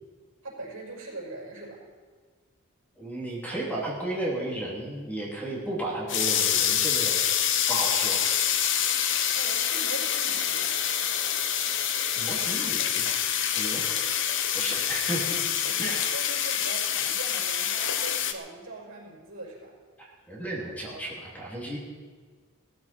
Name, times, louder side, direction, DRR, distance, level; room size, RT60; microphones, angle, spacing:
voice 1, 0.4-1.8 9.3-10.7 15.6-19.7, right 2 dB, 70° right, -3 dB, 5.6 m, -41 dB
voice 2, 3.0-7.2 7.7-8.3 12.2-13.1 13.5-13.8 14.5-15.4 15.8-16.1 20.0-21.8, right 1 dB, 10° left, -4 dB, 3.1 m, -33 dB
sound 1, 6.1-18.3, left 9 dB, 60° left, 0.9 m, -26 dB
17.5 x 14.0 x 4.5 m, 1.5 s
head